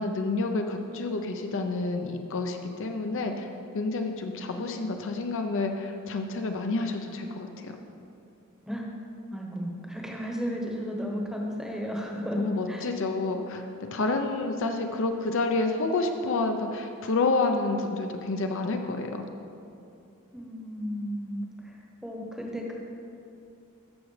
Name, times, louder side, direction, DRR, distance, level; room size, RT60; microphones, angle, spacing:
voice 1, 0.0-3.5 3.7-7.8 12.3-13.6 13.9-19.3, left 3 dB, 60° left, 4 dB, 0.6 m, -29 dB
voice 2, 9.3-12.9 20.3-22.7, equal, 5° right, -1 dB, 1.0 m, -34 dB
13.5 x 6.1 x 3.2 m, 2.6 s
head